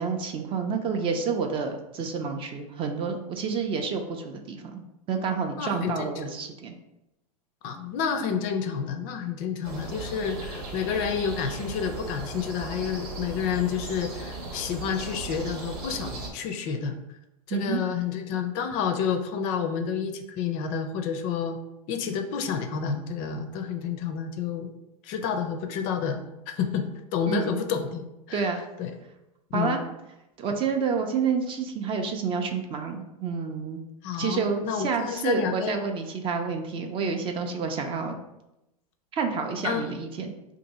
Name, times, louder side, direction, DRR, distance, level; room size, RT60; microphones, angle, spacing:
voice 1, 0.0-4.8 5.1-6.8 17.5-17.8 27.3-27.6 28.3-28.6 29.5-29.8 30.4-33.8 34.2-38.2 39.1-40.3, right 5 dB, 25° right, 4 dB, 0.4 m, -29 dB
voice 2, 5.6-6.3 7.6-17.0 17.5-21.6 21.9-24.7 25.0-28.5 28.8-29.0 29.5-29.8 34.0-35.8 39.6-40.0, left 7 dB, 45° left, 7 dB, 0.4 m, -29 dB
sound 1, 9.6-16.3, right 3 dB, 75° right, 1.0 m, -37 dB
2.6 x 2.6 x 4.1 m, 0.91 s
hypercardioid pair, 115°, 20 cm